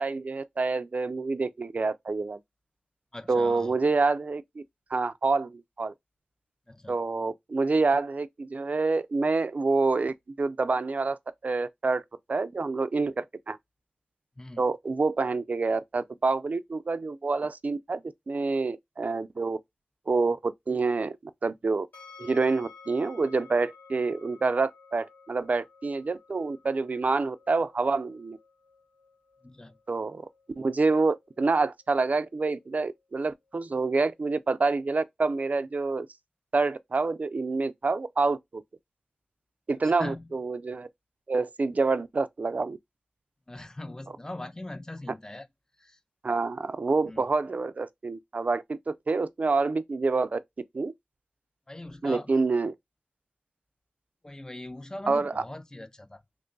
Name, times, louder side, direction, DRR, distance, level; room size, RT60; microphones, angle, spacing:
voice 1, 0.0-2.4 3.3-4.6 4.9-5.9 6.9-11.2 11.4-12.0 12.3-13.6 14.6-18.0 18.3-19.6 20.1-21.2 21.4-21.9 22.2-28.4 29.9-30.3 30.6-36.1 36.5-38.6 39.7-40.9 41.3-42.8 44.1-44.2 46.2-50.4 50.7-50.9 52.0-52.8 55.1-55.4, right 3 dB, 55° right, 0.3 m, -27 dB
voice 2, 3.1-3.7 6.7-6.9 14.4-14.6 29.4-29.7 40.0-40.3 43.5-45.5 45.8-46.0 47.1-47.2 51.7-52.3 54.2-56.2, left 1 dB, 20° left, 0.4 m, -40 dB
sound 1, 21.9-34.9, left 5 dB, 75° left, 1.1 m, -55 dB
2.9 x 2.3 x 3.8 m
wide cardioid pair, 55°, 3 cm